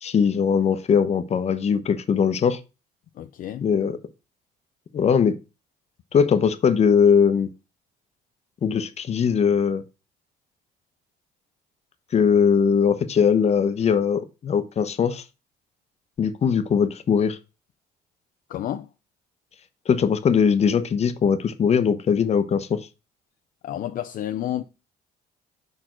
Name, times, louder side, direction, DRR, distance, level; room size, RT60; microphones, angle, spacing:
voice 1, 0.0-2.6 3.6-4.0 4.9-5.3 6.1-7.5 8.6-9.8 12.1-15.2 16.2-17.4 19.9-22.8, left 6 dB, 40° left, 0.8 m, -20 dB
voice 2, 3.2-3.7 18.5-18.9 23.6-24.6, left 11 dB, 55° left, 0.5 m, -30 dB
6.0 x 4.4 x 4.4 m
cardioid pair, 110°, 17 cm